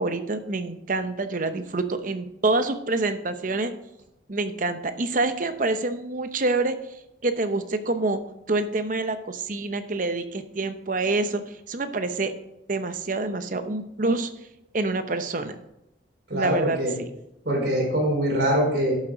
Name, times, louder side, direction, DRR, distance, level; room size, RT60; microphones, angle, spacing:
voice 1, 0.0-3.7 4.3-6.7 7.2-8.2 8.5-11.4 11.7-12.3 12.7-14.3 14.7-15.6 16.3-17.1, right 2 dB, 45° right, 9 dB, 0.8 m, -26 dB
voice 2, 16.3-16.9 17.4-18.9, equal, 60° right, -2 dB, 4.4 m, -23 dB
11.5 x 7.3 x 3.9 m, 0.86 s
head